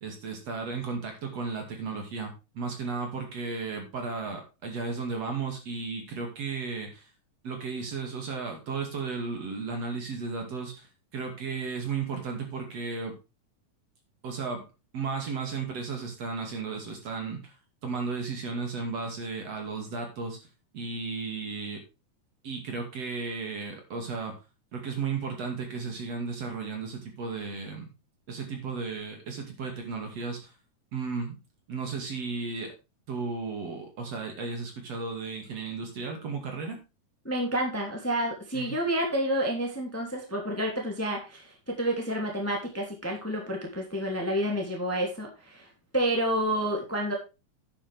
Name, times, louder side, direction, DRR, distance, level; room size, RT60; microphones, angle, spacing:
voice 1, 0.0-7.1 7.4-13.1 14.2-14.7 14.9-17.6 17.8-20.4 20.7-21.8 22.4-24.4 24.7-27.9 28.3-30.5 30.9-31.3 31.7-32.7 33.1-36.8 38.5-38.7, right 4 dB, 50° right, 3 dB, 3.3 m, -34 dB
voice 2, 37.2-45.7 45.9-47.1, right 1 dB, 5° left, 1 dB, 2.3 m, -29 dB
11.0 x 9.2 x 3.5 m, 0.28 s
omnidirectional pair, 3.8 m